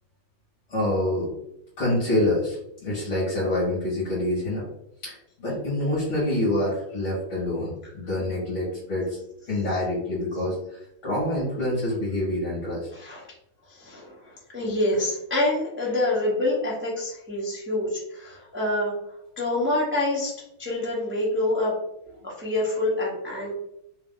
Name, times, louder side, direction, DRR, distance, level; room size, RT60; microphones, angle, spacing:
voice 1, 0.7-1.3 1.8-4.6 5.0-5.1 5.4-9.2 9.5-10.5 11.0-12.8, left 1 dB, 40° left, -8 dB, 1.7 m, -26 dB
voice 2, 12.9-13.2 13.7-18.9 19.4-21.7 22.2-23.5, left 1 dB, 10° right, -5 dB, 0.6 m, -26 dB
3.7 x 2.9 x 3.7 m, 0.80 s
omnidirectional pair, 2.2 m